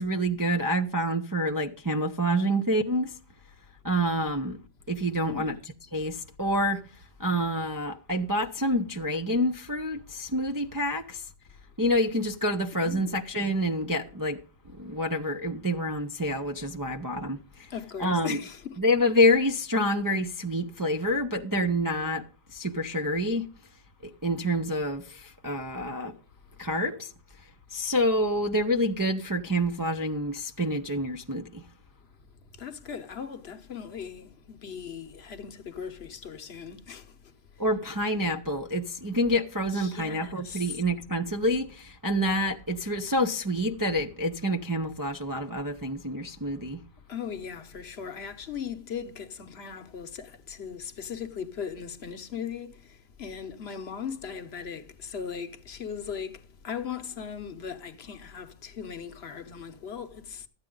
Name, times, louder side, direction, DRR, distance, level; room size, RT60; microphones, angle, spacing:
voice 1, 0.0-3.2 3.8-4.6 4.9-5.6 5.9-6.8 7.2-11.2 11.8-14.4 14.7-17.7 18.0-18.4 18.8-23.5 24.0-26.2 26.6-27.1 27.7-31.6 37.6-46.8, equal, 25° right, 0.4 m, -27 dB
voice 2, 5.2-5.6 12.8-13.2 17.7-18.8 32.6-37.1 39.7-40.8 47.1-60.5, left 7 dB, 55° left, 1.0 m, -38 dB
13.0 x 9.0 x 3.7 m
omnidirectional pair, 1.3 m